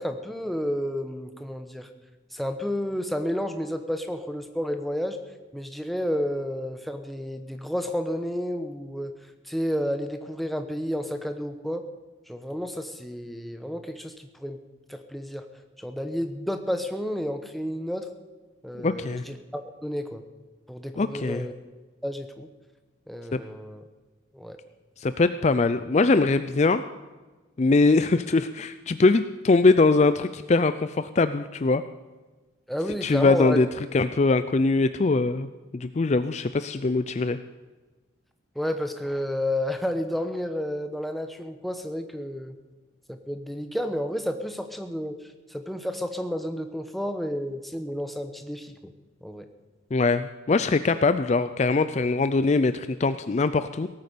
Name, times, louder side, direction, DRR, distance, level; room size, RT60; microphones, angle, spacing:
voice 1, 0.0-1.9 2.3-5.2 5.5-9.1 9.5-11.8 12.3-14.6 14.9-15.5 15.8-18.1 18.6-20.2 20.7-21.5 22.0-22.5 23.1-23.8 24.3-24.6 32.7-33.6 38.6-42.5 43.1-45.2 45.5-48.9 49.2-49.5, equal, ahead, 6 dB, 1.0 m, -31 dB
voice 2, 18.8-19.2 21.0-21.5 23.3-23.4 25.0-26.8 27.6-31.8 33.0-35.5 35.7-37.4 49.9-53.9, left 3 dB, 35° left, 12 dB, 0.4 m, -22 dB
17.5 x 9.5 x 6.8 m, 1.2 s
head